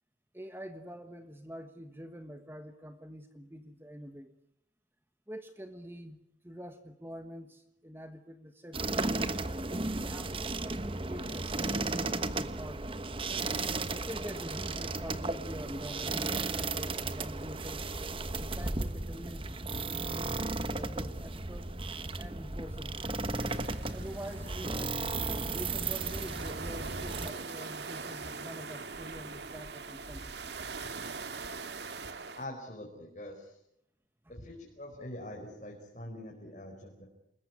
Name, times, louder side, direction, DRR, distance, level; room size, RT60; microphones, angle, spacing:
voice 1, 0.3-4.3 5.3-9.4 9.9-13.1 13.9-17.8 18.3-21.7 22.2-23.1 23.9-25.0 25.4-30.6 34.2-34.4, equal, 10° right, 8 dB, 1.3 m, -46 dB
sound 1, 8.7-27.3, right 3 dB, 30° right, 1.2 m, -35 dB
sound 2, 23.3-32.4, right 4 dB, 70° right, 1.9 m, -42 dB
voice 2, 32.3-33.6 34.3-37.0, left 1 dB, 40° left, 0 dB, 5.0 m, -44 dB
28.5 x 21.5 x 9.6 m, 0.78 s
head